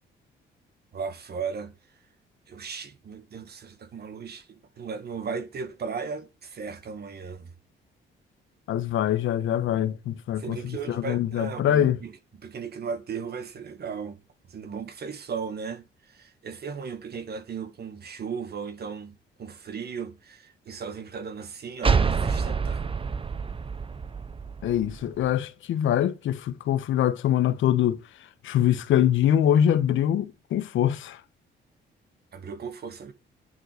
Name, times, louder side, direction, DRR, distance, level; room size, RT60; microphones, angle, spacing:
voice 1, 0.9-1.7 2.5-7.5 10.4-12.2 12.4-14.2 14.5-22.9 32.3-33.1, right 6 dB, 55° right, 2.0 m, -36 dB
voice 2, 8.7-12.0 24.6-28.0 28.4-31.2, left 10 dB, 80° left, 1.4 m, -24 dB
sound 1, 21.8-25.3, right 5 dB, 25° right, 0.9 m, -27 dB
9.8 x 7.7 x 5.1 m
cardioid pair, 90°, 20 cm